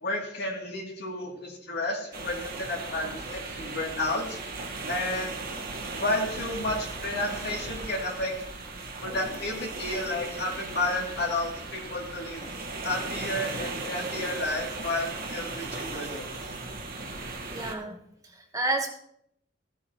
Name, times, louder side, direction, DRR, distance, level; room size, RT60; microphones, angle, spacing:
voice 1, 0.0-4.4 4.9-5.7 6.0-8.4 9.0-12.5 12.8-16.3, left 2 dB, 55° left, -1 dB, 2.6 m, -31 dB
sound 1, 2.1-17.7, right 3 dB, 50° right, 1.4 m, -37 dB
voice 2, 17.5-18.0 18.3-18.9, right 2 dB, 20° right, 2 dB, 1.2 m, -30 dB
15.0 x 8.6 x 2.9 m, 0.74 s
head